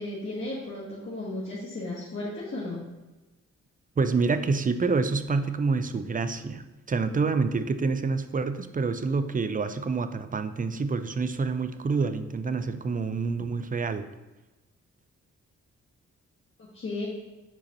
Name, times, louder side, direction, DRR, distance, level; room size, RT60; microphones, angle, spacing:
voice 1, 0.0-2.8 16.6-17.1, left 2 dB, 40° left, -6 dB, 1.5 m, -34 dB
voice 2, 4.0-14.0, right 4 dB, 30° right, 11 dB, 0.5 m, -27 dB
7.1 x 5.0 x 2.9 m, 1.1 s
cardioid pair, 65°, 30 cm